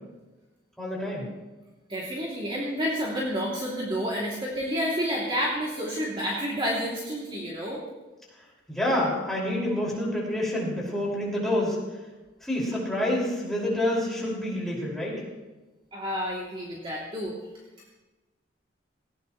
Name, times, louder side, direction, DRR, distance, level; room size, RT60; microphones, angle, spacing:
voice 1, 0.8-1.3 8.7-11.8 12.4-15.2, left 1 dB, ahead, -5 dB, 5.6 m, -27 dB
voice 2, 1.9-7.8 15.9-17.3, equal, 25° right, -5 dB, 2.9 m, -29 dB
19.0 x 18.5 x 3.2 m, 1.2 s
head